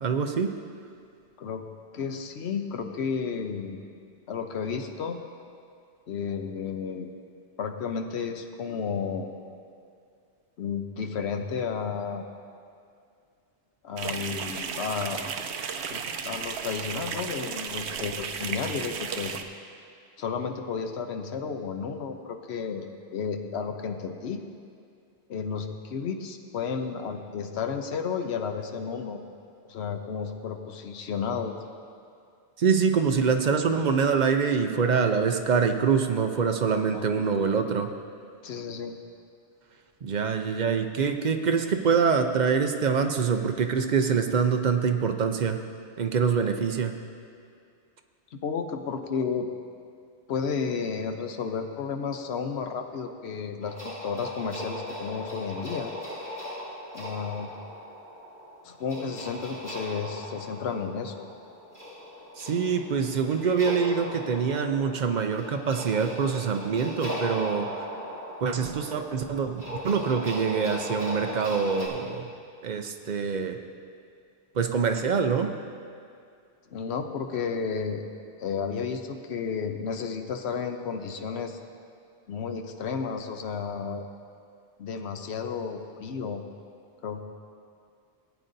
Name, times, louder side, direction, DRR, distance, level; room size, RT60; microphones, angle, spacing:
voice 1, 0.0-0.5 32.6-37.9 40.0-45.6 46.0-47.0 62.4-67.9 68.4-72.3 72.6-73.6 74.5-75.5, right 6 dB, 50° right, 6 dB, 0.6 m, -25 dB
voice 2, 1.9-3.8 4.3-5.2 6.1-7.1 7.6-9.3 10.6-12.2 13.8-15.2 15.9-19.4 20.2-24.4 25.3-29.2 29.7-31.6 36.9-37.1 38.4-39.0 48.3-49.5 50.3-55.9 56.9-57.5 58.6-61.3 76.7-78.0 78.4-81.6 82.3-84.1 84.8-86.4 87.0-87.3, left 6 dB, 70° left, 5 dB, 1.0 m, -32 dB
sound 1, 14.0-19.4, right 6 dB, 75° right, 0.9 m, -34 dB
sound 2, 53.6-71.9, equal, 15° left, 2.8 m, -38 dB
18.0 x 8.9 x 2.6 m, 2.3 s
omnidirectional pair, 1.2 m